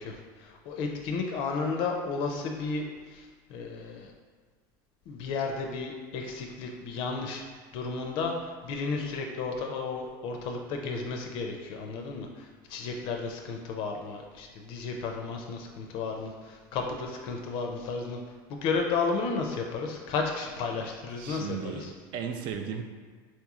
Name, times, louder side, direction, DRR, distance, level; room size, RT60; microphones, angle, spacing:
voice 1, 0.0-4.1 5.1-7.4 7.7-18.2 18.5-21.9, left 4 dB, 55° left, 2 dB, 0.4 m, -33 dB
voice 2, 21.2-22.8, right 7 dB, 50° right, 5 dB, 0.4 m, -35 dB
4.2 x 2.9 x 2.4 m, 1.5 s
cardioid pair, 145°, 10 cm